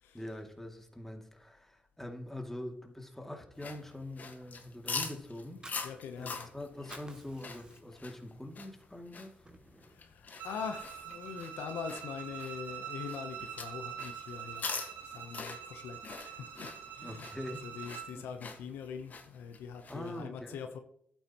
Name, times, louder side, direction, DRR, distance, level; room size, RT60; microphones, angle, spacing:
voice 1, 0.1-5.6 6.2-9.5 17.0-17.6 18.1-18.3 19.9-20.6, left 1 dB, 10° left, 2.6 m, -44 dB
sound 1, 3.5-20.2, left 4 dB, 55° left, 1.7 m, -45 dB
Fire, 5.4-6.5 6.8-8.1 8.5-8.7 9.1-10.0, right 2 dB, 25° right, 2.5 m, -52 dB
voice 2, 5.8-6.5 9.9-14.7 15.0-17.3 17.6-20.8, left 7 dB, 90° left, 0.9 m, -43 dB
Bowed string instrument, 10.4-18.2, right 9 dB, 85° right, 1.6 m, -45 dB
11.5 x 9.1 x 3.1 m
supercardioid pair, 55°, 4 cm